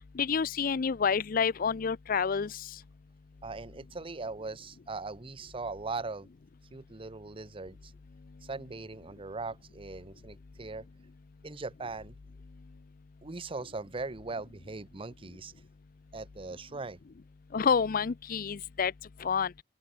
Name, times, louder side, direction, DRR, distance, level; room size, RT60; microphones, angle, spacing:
voice 1, 0.1-2.7 17.5-18.9 19.2-19.5, left 6 dB, 50° left, 0.5 m, -28 dB
voice 2, 3.4-6.3 6.7-7.9 8.4-10.9 11.4-12.2 13.2-15.5 16.1-17.0, right 3 dB, 30° right, 0.8 m, -40 dB
open air
head